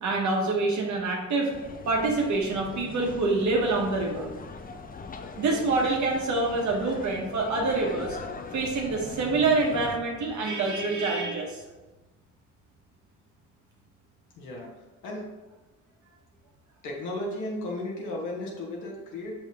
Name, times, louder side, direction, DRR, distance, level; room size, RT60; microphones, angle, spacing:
voice 1, 0.0-1.5 1.9-4.4 5.4-8.2 8.5-11.6, right 3 dB, 70° right, 0 dB, 1.4 m, -26 dB
sound 1, 1.5-10.0, left 5 dB, 30° left, 0.5 m, -41 dB
voice 2, 14.4-14.7 15.0-15.2 16.8-19.3, left 1 dB, 85° left, -2 dB, 1.4 m, -34 dB
5.9 x 5.1 x 3.6 m, 1.1 s
cardioid pair, 90°, 30 cm